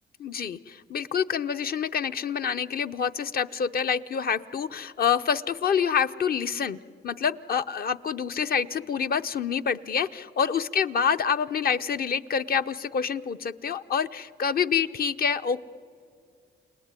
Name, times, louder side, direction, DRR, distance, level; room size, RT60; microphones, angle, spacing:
voice 1, 0.2-6.8 7.0-15.6, left 7 dB, 50° left, 10 dB, 0.8 m, -27 dB
29.5 x 19.0 x 9.7 m, 2.2 s
cardioid pair, 90°, 20 cm